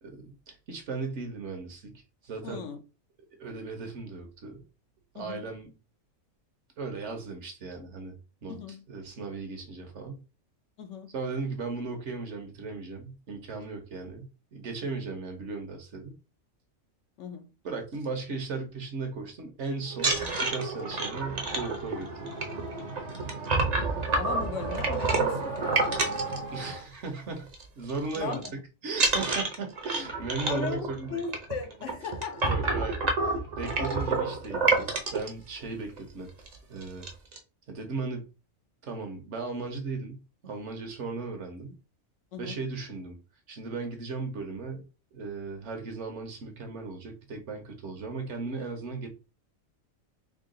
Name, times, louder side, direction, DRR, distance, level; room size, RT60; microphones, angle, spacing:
voice 1, 0.0-1.9 2.2-2.7 3.4-4.6 5.1-5.7 6.8-8.2 8.4-8.6 8.9-10.2 11.1-16.2 17.6-22.3 26.5-27.5 27.8-28.4 28.8-31.3 32.4-33.0 33.2-36.3 36.7-37.1 37.7-38.3 38.8-41.8 42.4-43.2 43.5-44.9 45.1-49.1, right 4 dB, 60° right, 1.2 m, -36 dB
voice 2, 2.4-2.8 5.1-5.5 8.5-8.8 10.8-11.1 17.2-17.5 24.2-26.0 28.2-28.5 30.5-32.8 42.3-42.6, left 5 dB, 70° left, 1.0 m, -37 dB
sound 1, 19.9-27.1 27.4-27.6 27.9-28.5 28.9-35.3 36.0-36.1 36.4-36.6 36.8-37.4, right 3 dB, 40° right, 0.7 m, -29 dB
3.7 x 2.3 x 3.7 m
omnidirectional pair, 1.4 m